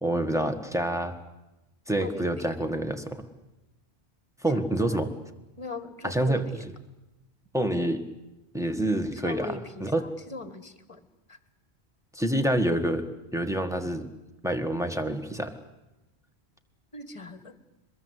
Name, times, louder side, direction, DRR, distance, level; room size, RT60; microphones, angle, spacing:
voice 1, 0.0-1.1 1.9-3.3 4.4-5.1 6.0-6.4 7.5-8.0 8.5-10.0 12.1-13.1 13.3-14.1 14.4-15.6, right 1 dB, 5° right, 6 dB, 1.6 m, -27 dB
voice 2, 2.0-2.5 4.5-5.0 5.6-6.6 9.1-11.4 16.9-17.6, left 3 dB, 30° left, 12 dB, 1.7 m, -40 dB
23.5 x 21.5 x 8.2 m, 1.0 s
omnidirectional pair, 1.1 m